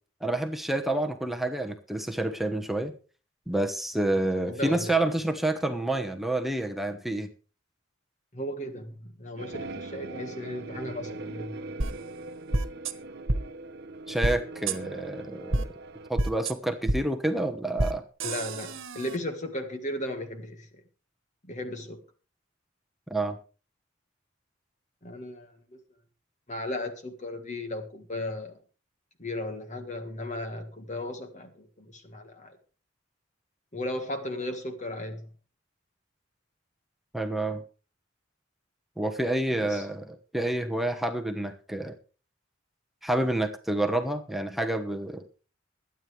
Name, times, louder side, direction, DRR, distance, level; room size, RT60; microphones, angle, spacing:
voice 1, 0.2-2.9 3.5-7.3 14.1-15.7 16.1-18.0 23.1-23.4 37.1-37.6 39.0-41.9 43.0-45.2, right 1 dB, ahead, 1.1 m, -28 dB
voice 2, 4.1-5.0 8.3-11.5 18.2-20.7 21.5-22.0 25.0-25.5 26.5-28.5 29.2-32.6 33.7-35.3 39.6-39.9, left 1 dB, 35° left, 1.7 m, -36 dB
sound 1, 9.4-16.1, right 2 dB, 55° right, 0.9 m, -41 dB
sound 2, 11.8-11.9 12.5-12.9 13.3-13.4 14.2-14.4 14.7-14.8 15.5-15.6 16.2-16.5 16.9-17.0 17.8-17.9 18.2-19.2, right 2 dB, 75° right, 1.3 m, -27 dB
22.0 x 9.2 x 3.3 m
head